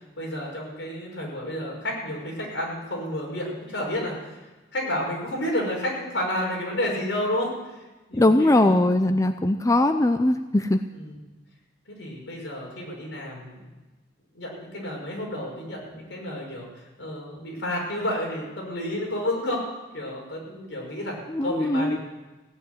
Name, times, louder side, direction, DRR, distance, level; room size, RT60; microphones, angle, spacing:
voice 1, 0.2-4.3 4.7-7.8 8.1-9.2 11.0-11.2 12.0-13.7 14.3-16.7 17.0-19.6 19.9-22.0, left 1 dB, 80° left, -1 dB, 5.5 m, -31 dB
voice 2, 8.1-10.8 21.3-22.0, left 1 dB, 20° left, 8 dB, 0.5 m, -20 dB
16.5 x 8.6 x 9.4 m, 1.2 s
head